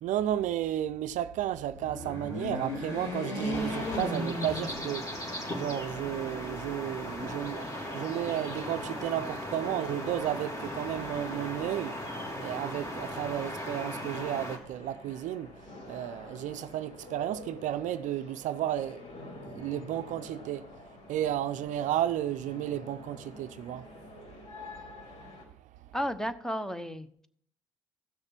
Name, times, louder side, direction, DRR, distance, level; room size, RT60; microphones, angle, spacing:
voice 1, 0.0-5.0 5.5-11.9 12.4-15.5 15.9-19.0 19.5-20.6 21.1-23.9, right 12 dB, 65° right, 0.5 m, -33 dB
sound 1, 1.7-5.3 5.8-5.9 7.0-7.7, left 1 dB, 85° left, 4.2 m, -35 dB
sound 2, 3.5-14.6, left 1 dB, 25° left, 3.5 m, -38 dB
sound 3, 7.7-25.4, left 2 dB, 60° left, 5.2 m, -48 dB
voice 2, 25.9-27.3, equal, 5° left, 1.1 m, -33 dB
15.5 x 6.5 x 5.9 m
hypercardioid pair, 55°, 14 cm